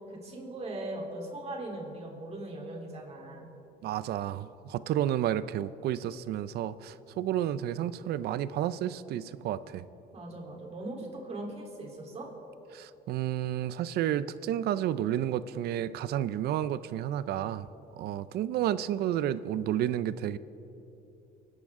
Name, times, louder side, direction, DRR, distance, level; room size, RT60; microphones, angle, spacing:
voice 1, 0.1-3.5 10.1-12.3, right 1 dB, 40° right, 0 dB, 3.5 m, -39 dB
voice 2, 3.8-9.8 12.7-17.7 18.0-20.4, right 11 dB, 70° right, 16 dB, 0.5 m, -31 dB
30.0 x 12.0 x 3.7 m, 3.0 s
cardioid pair, 110°, 17 cm